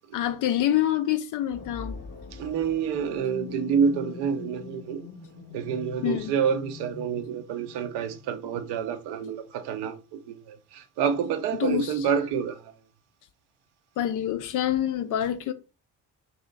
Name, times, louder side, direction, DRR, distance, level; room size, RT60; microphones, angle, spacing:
voice 1, 0.1-2.0 6.0-6.3 11.6-12.1 14.0-15.5, left 11 dB, 45° left, 0.5 m, -26 dB
sound 1, 1.5-9.2, left 6 dB, 20° left, 0.8 m, -43 dB
voice 2, 2.3-5.0 5.5-10.0 10.3-12.6, right 7 dB, 60° right, 0.7 m, -28 dB
2.8 x 2.7 x 3.9 m
figure-of-eight pair, 45°, 47 cm